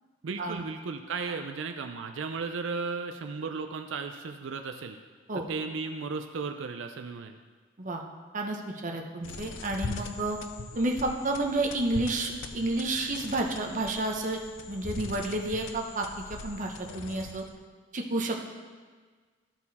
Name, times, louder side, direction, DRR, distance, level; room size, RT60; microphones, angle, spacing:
voice 1, 0.2-5.0 5.5-7.4, right 4 dB, 90° right, 6 dB, 0.5 m, -35 dB
voice 2, 8.3-10.4 10.7-14.4 14.7-17.4 17.9-18.5, right 2 dB, 45° right, 1 dB, 0.9 m, -30 dB
sound 1, 9.2-17.6, left 3 dB, 85° left, 0.6 m, -41 dB
13.0 x 4.5 x 4.1 m, 1.5 s
head